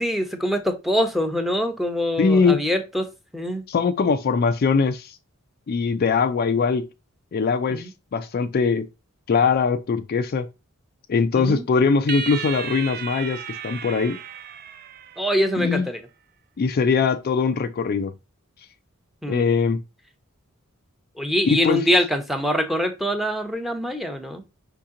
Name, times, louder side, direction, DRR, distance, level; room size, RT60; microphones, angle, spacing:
voice 1, 0.0-3.1 3.3-3.6 7.7-7.9 11.3-11.6 15.2-16.0 19.2-19.5 21.2-24.4, equal, ahead, 0.7 m, -24 dB
voice 2, 2.2-2.6 3.7-5.2 5.7-6.9 7.3-8.9 9.3-10.5 11.1-14.2 15.6-15.9 16.6-18.1 19.3-19.8 21.4-21.8, left 5 dB, 45° left, 0.3 m, -21 dB
sound 1, 12.1-15.6, right 7 dB, 45° right, 0.4 m, -34 dB
5.2 x 2.8 x 3.7 m
head